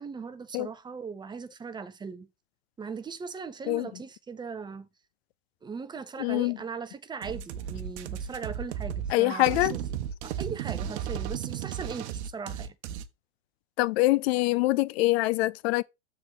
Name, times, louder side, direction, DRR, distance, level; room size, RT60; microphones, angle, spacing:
voice 1, 0.0-2.3 2.8-4.9 5.6-9.8 10.2-12.7, right 5 dB, 10° right, 0.6 m, -39 dB
voice 2, 6.2-6.6 9.1-9.8 13.8-15.8, left 19 dB, 60° left, 0.5 m, -24 dB
sound 1, 7.2-13.1, right 9 dB, 65° right, 1.0 m, -34 dB
7.1 x 3.9 x 4.8 m
hypercardioid pair, 120°, 36 cm